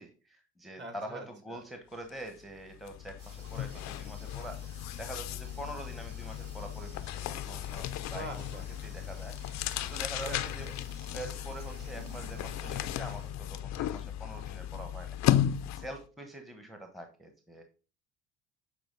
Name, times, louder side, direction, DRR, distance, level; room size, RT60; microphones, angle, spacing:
voice 1, 0.0-8.3 8.8-10.7 11.1-15.2 15.5-17.6, right 1 dB, ahead, 5 dB, 1.1 m, -45 dB
voice 2, 0.8-1.6 8.1-8.7 10.2-10.7, right 2 dB, 30° right, 6 dB, 2.0 m, -44 dB
sound 1, 2.1-2.3 2.6-16.0, left 12 dB, 50° left, 0.6 m, -35 dB
sound 2, 3.2-13.3, right 3 dB, 75° right, 3.2 m, -56 dB
sound 3, 8.0-13.1, right 6 dB, 55° right, 1.3 m, -56 dB
8.1 x 4.4 x 3.8 m, 0.36 s
hypercardioid pair, 65°, 36 cm